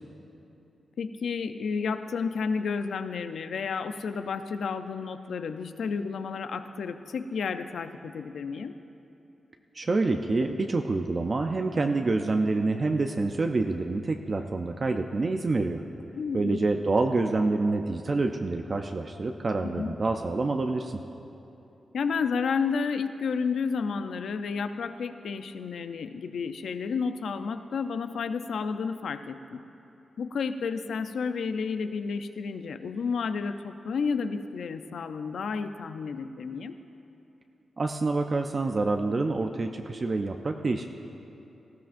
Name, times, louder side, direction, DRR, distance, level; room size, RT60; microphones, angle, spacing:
voice 1, 1.0-8.7 16.1-16.7 19.6-19.9 21.9-29.6 30.2-36.8, left 5 dB, 75° left, 9 dB, 0.5 m, -31 dB
voice 2, 9.7-15.8 16.3-21.0 37.8-40.9, right 3 dB, 35° right, 4 dB, 0.4 m, -27 dB
18.5 x 15.5 x 2.6 m, 2.9 s
wide cardioid pair, 145°, 0 cm